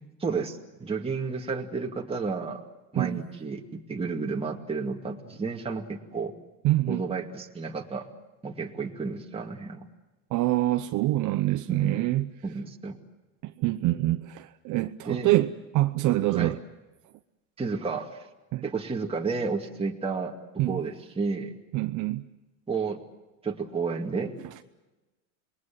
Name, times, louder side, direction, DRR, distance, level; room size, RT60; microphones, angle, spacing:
voice 1, 0.2-2.6 2.9-3.6 3.9-6.3 6.9-8.1 8.4-9.8 11.7-12.1 12.4-13.0 15.1-15.3 16.3-16.5 17.6-18.3 18.6-21.5 22.7-23.0 23.4-24.3, right 4 dB, 15° right, 2.3 m, -31 dB
voice 2, 6.6-7.0 10.3-12.3 13.4-16.6 18.5-18.6 20.6-20.8 21.7-22.2, right 16 dB, 45° right, 0.8 m, -25 dB
27.5 x 21.0 x 7.6 m
supercardioid pair, 125°, 42 cm